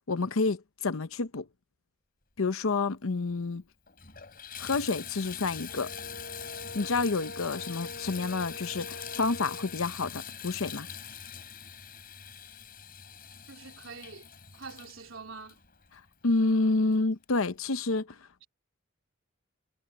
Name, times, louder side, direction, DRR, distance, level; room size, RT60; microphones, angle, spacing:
voice 1, 0.1-1.5 2.4-3.6 4.6-5.9 6.7-10.9 16.2-18.2, left 3 dB, 80° left, 0.8 m, -29 dB
Water tap faucet / Bathtub (filling or washing), 3.3-3.4 3.9-16.3 16.9-17.0 17.5-17.6, left 8 dB, 45° left, 5.6 m, -43 dB
Brass instrument, 5.7-9.8, left 2 dB, 65° left, 2.4 m, -44 dB
voice 2, 13.5-14.3 14.5-15.6, right 4 dB, 70° right, 3.4 m, -45 dB
head